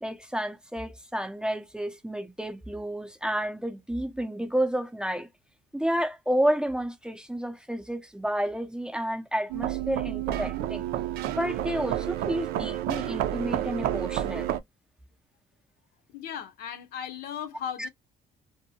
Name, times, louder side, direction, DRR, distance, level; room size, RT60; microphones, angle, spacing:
voice 1, 0.0-5.3 5.7-10.8 11.4-14.5 17.8-17.9, equal, 5° right, 0.5 m, -30 dB
sound 1, 9.5-14.6, right 12 dB, 85° right, 0.5 m, -30 dB
voice 2, 16.1-17.9, left 8 dB, 75° left, 0.7 m, -36 dB
2.6 x 2.6 x 2.7 m
cardioid pair, 135°, 16 cm